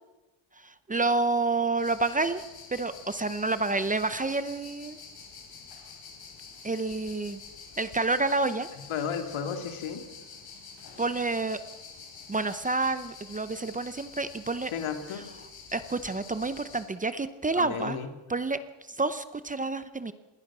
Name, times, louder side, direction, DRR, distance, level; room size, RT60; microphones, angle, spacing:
voice 1, 0.6-2.4 2.7-5.0 6.6-7.4 7.8-8.7 11.0-11.6 12.3-14.7 15.7-18.0 18.3-18.6 18.9-20.1, right 3 dB, 15° right, 12 dB, 0.7 m, -29 dB
sound 1, 1.8-16.9, left 5 dB, 50° left, 4.8 m, -47 dB
voice 2, 8.9-10.1 14.7-15.3 17.5-18.1, left 7 dB, 80° left, 6 dB, 2.8 m, -33 dB
27.5 x 21.0 x 6.1 m, 1.1 s
cardioid pair, 175°, 47 cm